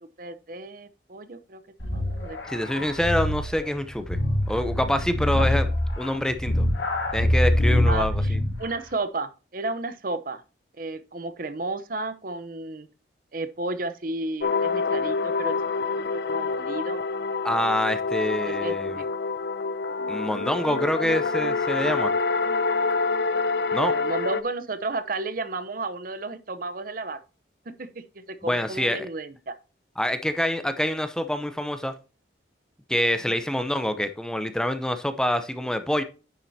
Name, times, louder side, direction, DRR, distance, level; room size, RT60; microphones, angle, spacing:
voice 1, 0.0-2.4 2.7-2.9 5.4-5.5 7.8-10.4 10.8-12.9 13.3-15.6 16.0-17.0 18.4-19.1 23.9-27.2 27.7-29.6 33.3-33.4, right 2 dB, 50° right, 0.8 m, -33 dB
sound 1, 1.8-8.7, left 1 dB, 85° left, 2.3 m, -25 dB
voice 2, 2.5-4.2 4.5-5.7 6.0-6.7 7.1-8.4 17.4-19.0 20.1-22.1 23.7-24.0 28.4-29.1 30.0-32.0 32.9-36.0, left 1 dB, 5° left, 0.6 m, -26 dB
sound 2, 14.4-24.4, left 4 dB, 60° left, 0.5 m, -26 dB
10.0 x 7.4 x 2.7 m
head